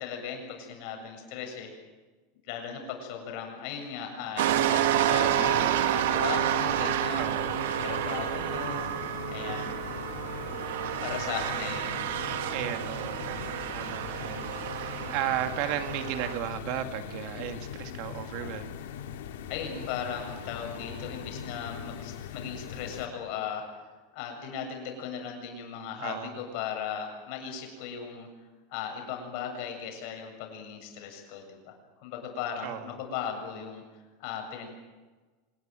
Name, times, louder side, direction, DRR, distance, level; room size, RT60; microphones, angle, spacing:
voice 1, 0.0-1.7 2.4-7.3 7.8-8.8 9.3-9.8 11.0-12.0 19.5-23.7 24.1-28.3 28.7-31.7 32.0-34.7, left 7 dB, 50° left, 3 dB, 7.6 m, -37 dB
sound 1, 4.4-23.1, left 8 dB, 85° left, 2.7 m, -40 dB
sound 2, 4.4-16.4, right 11 dB, 80° right, 2.0 m, -29 dB
voice 2, 7.2-7.5 12.5-18.7 26.0-26.3 32.6-32.9, right 10 dB, 50° right, 8 dB, 2.2 m, -35 dB
26.0 x 20.0 x 9.1 m, 1.3 s
supercardioid pair, 165°, 0 cm